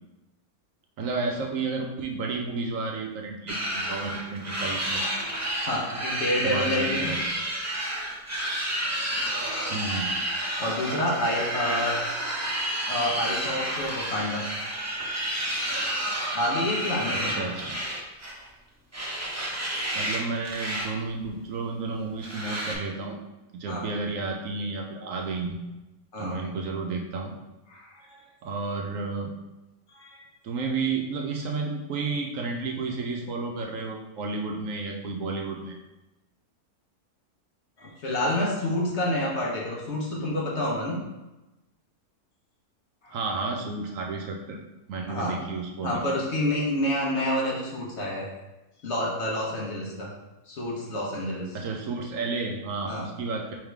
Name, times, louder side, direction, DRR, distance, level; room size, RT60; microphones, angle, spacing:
voice 1, 1.0-5.1 6.4-7.3 9.7-10.2 17.1-17.8 19.9-23.2 23.5-25.6 26.2-27.4 28.4-29.3 30.4-35.8 43.1-44.6 44.9-46.0 51.5-53.5, right 3 dB, 70° right, 1 dB, 0.9 m, -32 dB
sound 1, 3.5-18.5 18.9-20.2 20.4-20.9 21.2-21.3 22.2-22.7, right 1 dB, 25° right, 0.4 m, -30 dB
voice 2, 5.7-7.1 10.6-12.0 12.9-14.5 16.3-17.6 23.7-23.9 26.1-26.4 27.7-28.2 29.9-30.2 37.8-41.0 43.0-43.2 45.1-45.4 45.8-48.3 48.8-50.1 50.5-51.6 52.9-53.1, left 1 dB, 50° left, -3 dB, 1.2 m, -28 dB
3.6 x 3.1 x 4.6 m, 1.0 s
omnidirectional pair, 1.6 m